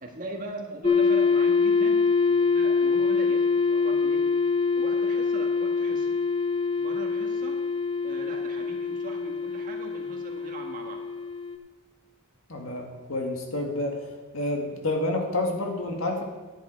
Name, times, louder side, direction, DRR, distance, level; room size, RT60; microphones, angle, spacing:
voice 1, 0.0-2.0 2.3-4.2 4.8-6.1 6.8-7.6 8.0-11.0, right 2 dB, 40° right, 1 dB, 1.7 m, -40 dB
sound 1, 0.8-11.6, left 4 dB, 20° left, 0.6 m, -25 dB
voice 2, 12.5-14.1 14.3-16.2, left 2 dB, 75° left, 2 dB, 1.9 m, -29 dB
10.5 x 10.0 x 4.6 m, 1.3 s
head